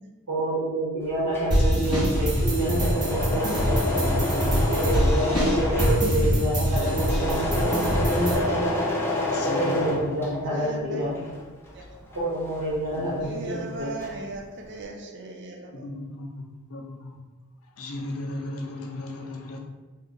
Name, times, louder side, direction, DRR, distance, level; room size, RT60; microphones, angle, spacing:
voice 1, 0.3-3.8 4.7-8.7 9.4-11.1 12.1-13.9, right 1 dB, 80° right, -12 dB, 1.1 m, -28 dB
Engine / Mechanisms, 1.1-10.7 11.0-13.4 13.6-14.4, left 1 dB, 10° left, 0.5 m, -29 dB
sound 1, 1.5-8.4, equal, 20° right, 1.3 m, -24 dB
voice 2, 1.7-2.3 2.7-3.1 3.9-4.6 5.0-5.1 6.7-6.8 7.3-7.4 9.3-10.6 11.0-11.1 13.0-13.3 13.5-13.6 15.7-16.3 16.7-17.2 17.8-19.6, left 1 dB, 70° left, 2 dB, 0.5 m, -36 dB
voice 3, 2.9-4.1 6.0-6.1 8.1-8.8 10.2-11.1 11.7-11.9 13.2-15.9, right 2 dB, 55° right, 2 dB, 0.5 m, -39 dB
2.9 x 2.4 x 3.8 m, 1.2 s
head